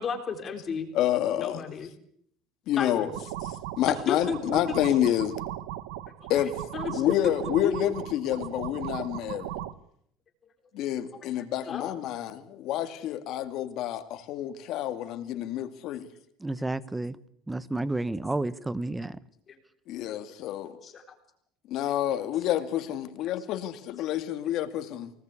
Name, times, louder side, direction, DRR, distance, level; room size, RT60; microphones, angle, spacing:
voice 1, 0.0-0.9 1.4-1.9 2.8-3.2 3.9-4.4 4.7-5.0 6.2-7.1 7.6-7.7 11.1-11.9 19.5-19.6 20.1-20.2 20.6-21.0 23.3-23.4, left 6 dB, 30° left, 3.8 m, -34 dB
voice 2, 0.9-1.6 2.7-3.1 3.8-5.4 6.3-6.6 6.9-9.5 10.7-16.1 19.9-20.7 21.7-25.1, left 12 dB, 55° left, 2.4 m, -28 dB
sound 1, 3.1-9.7, right 13 dB, 90° right, 1.3 m, -37 dB
voice 3, 16.4-17.2 17.5-19.2, right 2 dB, 10° right, 1.1 m, -31 dB
24.5 x 19.5 x 8.5 m
cardioid pair, 135°, 0 cm